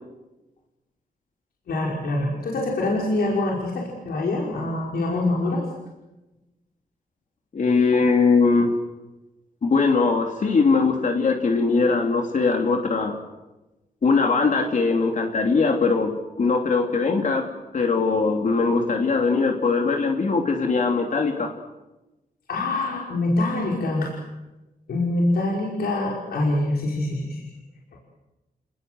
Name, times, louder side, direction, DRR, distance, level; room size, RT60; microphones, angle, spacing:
voice 1, 1.7-5.6 22.5-24.2 24.9-27.4 27.9-28.0, left 2 dB, 85° left, -2 dB, 5.5 m, -25 dB
voice 2, 7.5-8.7 9.6-13.2 14.0-17.5 17.7-21.5, left 4 dB, 55° left, 2 dB, 3.1 m, -21 dB
29.0 x 20.5 x 8.0 m, 1.0 s
cardioid pair, 85°, 16 cm